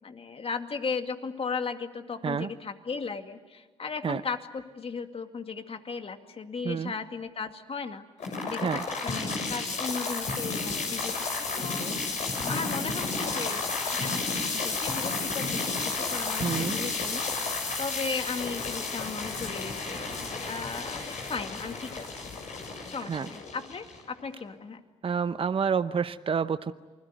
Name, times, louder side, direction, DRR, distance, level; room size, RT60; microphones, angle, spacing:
voice 1, 0.0-8.1 8.5-12.0 12.5-13.6 13.9-22.3 22.9-24.8, left 5 dB, 45° left, 6 dB, 2.4 m, -36 dB
sound 1, 8.2-24.2, left 3 dB, 65° left, 7.0 m, -32 dB
voice 2, 16.4-16.7 23.1-23.3 25.0-26.7, right 6 dB, 45° right, 11 dB, 0.8 m, -28 dB
28.5 x 21.0 x 9.3 m, 1.3 s
supercardioid pair, 55°, 13 cm